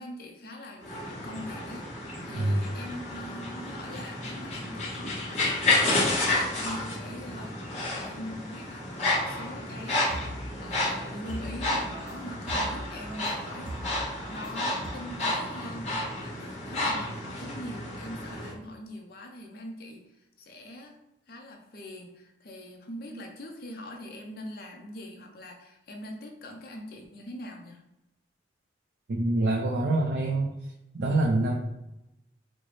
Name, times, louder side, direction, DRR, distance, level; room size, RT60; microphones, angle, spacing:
voice 1, 0.0-7.7 7.9-10.1 10.6-13.7 14.3-20.1 20.4-21.0 21.3-27.8, left 1 dB, 55° left, 2 dB, 0.5 m, -42 dB
sound 1, 0.8-18.5, left 2 dB, 35° left, 1.2 m, -31 dB
sound 2, 9.7-14.9, right 1 dB, 45° right, 0.8 m, -42 dB
voice 2, 29.1-30.5 30.9-31.5, right 2 dB, 70° right, -1 dB, 0.4 m, -25 dB
4.2 x 2.0 x 3.1 m, 0.91 s
head